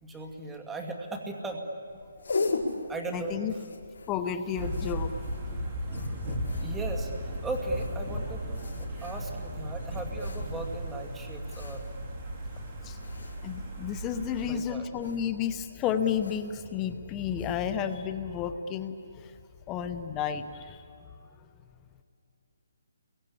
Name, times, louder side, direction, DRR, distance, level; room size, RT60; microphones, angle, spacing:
voice 1, 0.0-1.7 2.8-3.4 5.9-6.2 6.5-11.8 14.4-14.9, right 2 dB, 5° right, 2 dB, 2.2 m, -37 dB
sound 1, 1.9-17.9, left 3 dB, 65° left, 4.9 m, -40 dB
voice 2, 3.1-3.5 4.1-5.1 12.8-13.0 13.4-19.4 19.7-21.1 21.4-21.5, left 8 dB, 15° left, 9 dB, 0.9 m, -32 dB
sound 2, 4.6-14.6, equal, 25° right, 3.8 m, -36 dB
29.5 x 22.5 x 8.6 m, 2.5 s
hypercardioid pair, 165°, 0 cm